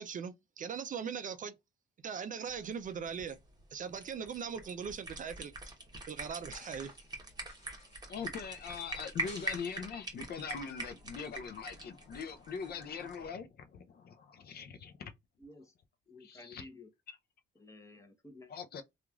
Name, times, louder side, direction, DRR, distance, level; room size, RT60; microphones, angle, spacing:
voice 1, 0.0-1.5 2.0-3.4 3.7-5.7 6.1-6.9, right 7 dB, 40° right, 0.4 m, -40 dB
sound 1, 2.5-13.3, right 2 dB, 20° right, 0.9 m, -44 dB
sound 2, 6.3-7.2 7.4-9.9 12.1-12.6 13.1-13.2, left 2 dB, 35° left, 1.7 m, -56 dB
voice 2, 8.1-15.1 16.2-16.6 18.5-18.8, left 6 dB, 55° left, 0.5 m, -42 dB
voice 3, 15.4-15.8 16.1-16.9 17.5-18.5, left 2 dB, 15° left, 0.8 m, -53 dB
2.9 x 2.4 x 2.3 m
cardioid pair, 90°, 20 cm